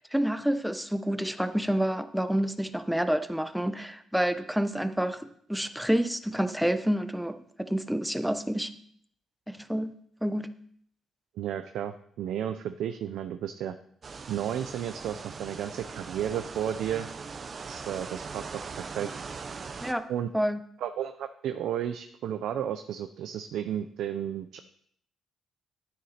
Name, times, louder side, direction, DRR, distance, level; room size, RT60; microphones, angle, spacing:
voice 1, 0.1-7.4 7.7-8.7 9.5-9.9 10.2-10.5 19.8-20.0 20.3-20.6, equal, ahead, 10 dB, 0.8 m, -28 dB
voice 2, 11.4-13.8 14.3-17.1 17.7-19.1 20.1-20.3 20.8-24.6, right 10 dB, 80° right, 9 dB, 0.5 m, -33 dB
sound 1, 14.0-19.9, right 5 dB, 45° right, 0.8 m, -40 dB
9.5 x 9.4 x 4.3 m, 0.65 s
cardioid pair, 90°, 0 cm